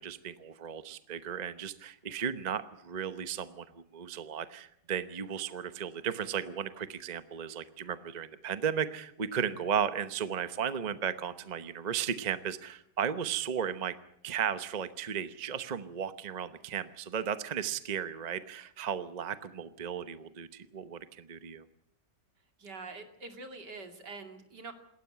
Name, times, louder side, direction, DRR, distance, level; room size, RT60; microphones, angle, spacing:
voice 1, 0.0-13.9 14.2-21.7, right 7 dB, 30° right, 11 dB, 0.8 m, -35 dB
voice 2, 22.6-24.7, right 3 dB, 75° right, 5 dB, 3.2 m, -45 dB
27.5 x 13.0 x 8.8 m, 0.70 s
omnidirectional pair, 1.9 m